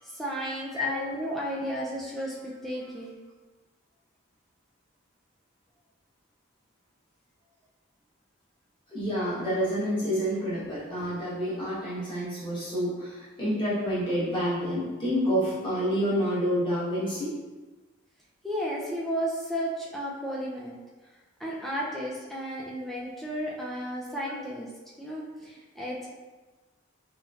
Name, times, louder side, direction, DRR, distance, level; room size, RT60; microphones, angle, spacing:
voice 1, 0.0-3.2 18.4-20.8 21.4-24.7 25.0-26.1, equal, ahead, -5 dB, 0.3 m, -33 dB
voice 2, 8.9-17.4 24.0-24.4, equal, 20° left, -11 dB, 1.2 m, -28 dB
3.0 x 3.0 x 2.4 m, 1.2 s
head